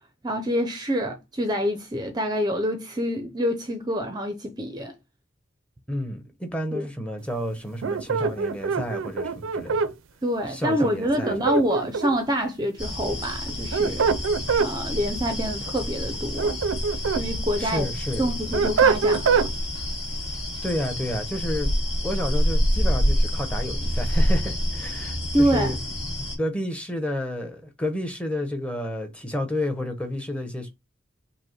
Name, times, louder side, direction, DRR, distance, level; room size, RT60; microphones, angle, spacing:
voice 1, 0.2-4.9 6.7-6.9 10.2-14.0 14.6-16.6 17.2-17.9 18.2-19.5 25.3-25.7, equal, 20° right, 0.5 m, -26 dB
voice 2, 5.9-9.9 10.5-11.4 17.6-18.3 20.6-21.7 22.0-25.2 25.5-25.8 26.4-30.8, left 1 dB, 5° left, 0.8 m, -30 dB
sound 1, 7.8-9.9 11.2-12.3 13.5-14.7 16.1-17.3 17.7-19.5, right 5 dB, 80° right, 0.4 m, -24 dB
sound 2, 12.8-26.4, equal, 30° left, 2.5 m, -27 dB
5.2 x 2.1 x 4.2 m
head